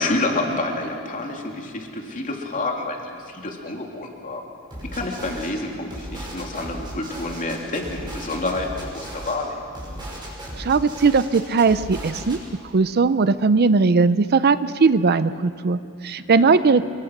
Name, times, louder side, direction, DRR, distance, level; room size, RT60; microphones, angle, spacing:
voice 1, 0.0-3.0 3.3-4.4 4.9-9.6 16.4-16.5, left 2 dB, 35° left, 1 dB, 2.9 m, -28 dB
sound 1, 4.7-5.5 5.9-9.3 9.7-12.4, right 1 dB, 20° right, 5.9 m, -36 dB
voice 2, 10.6-12.4 12.6-16.9, right 4 dB, 45° right, 14 dB, 0.5 m, -19 dB
26.5 x 23.0 x 6.1 m, 2.5 s
head